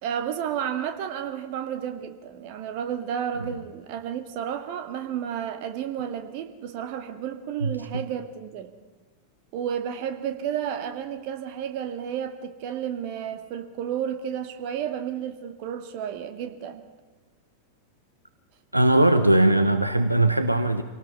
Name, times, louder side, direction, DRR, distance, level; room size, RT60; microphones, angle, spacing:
voice 1, 0.0-8.7 9.5-16.8, right 9 dB, 45° right, 8 dB, 2.2 m, -32 dB
voice 2, 18.7-20.8, right 1 dB, 85° right, 9 dB, 1.1 m, -20 dB
26.5 x 18.5 x 5.6 m, 1.3 s
figure-of-eight pair, 90°, 0 cm